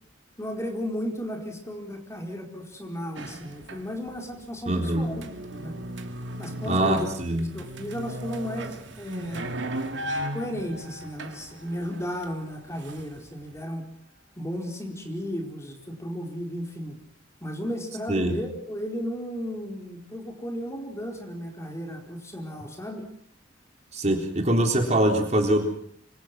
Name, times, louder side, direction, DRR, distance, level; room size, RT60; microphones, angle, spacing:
voice 1, 0.4-5.2 5.5-5.8 6.4-7.1 7.4-9.5 10.3-13.9 14.4-17.0 17.4-23.1, equal, 15° left, 2 dB, 4.6 m, -34 dB
sound 1, 3.2-4.2 4.5-13.4, right 1 dB, 75° right, 2.6 m, -36 dB
voice 2, 4.7-5.1 6.7-7.4 18.1-18.4 23.9-25.6, right 1 dB, 40° right, 3 dB, 3.8 m, -23 dB
26.0 x 25.5 x 6.2 m, 0.63 s
head